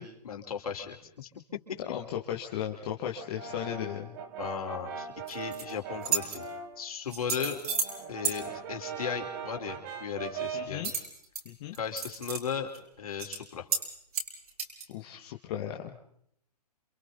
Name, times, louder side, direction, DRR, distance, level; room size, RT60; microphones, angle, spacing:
voice 1, 0.2-1.8 4.4-6.5 6.8-7.6 8.1-10.9 11.8-12.7 13.0-13.7, left 7 dB, 65° left, 3 dB, 4.6 m, -36 dB
voice 2, 1.9-4.2 10.5-10.9 11.5-11.7 14.9-15.9, left 10 dB, 40° left, 1 dB, 2.1 m, -36 dB
Brass instrument, 3.2-6.8 7.2-10.8, right 6 dB, 35° right, 2.7 m, -40 dB
sound 1, 5.3-5.6 6.0-6.4 7.1-7.9 8.2-8.4 10.8-11.4 11.7-12.4 12.7-12.8 13.2-13.4 13.7-13.9 14.1-14.9, right 6 dB, 65° right, 6.4 m, -31 dB
29.5 x 28.0 x 4.1 m, 0.70 s
figure-of-eight pair, 130°, 20 cm